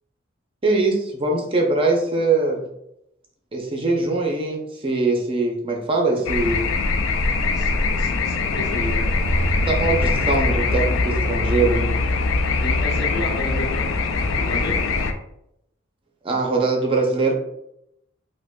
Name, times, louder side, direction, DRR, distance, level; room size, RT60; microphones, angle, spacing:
voice 1, 0.6-2.7 3.5-6.6 9.7-11.9 16.2-17.3, right 3 dB, 25° right, 1 dB, 0.5 m, -22 dB
sound 1, 6.3-15.1, left 3 dB, 80° left, 0.4 m, -22 dB
voice 2, 7.5-9.1 12.6-13.9 14.4-14.8, left 1 dB, 55° left, -1 dB, 0.9 m, -32 dB
4.8 x 2.1 x 2.2 m, 0.79 s
head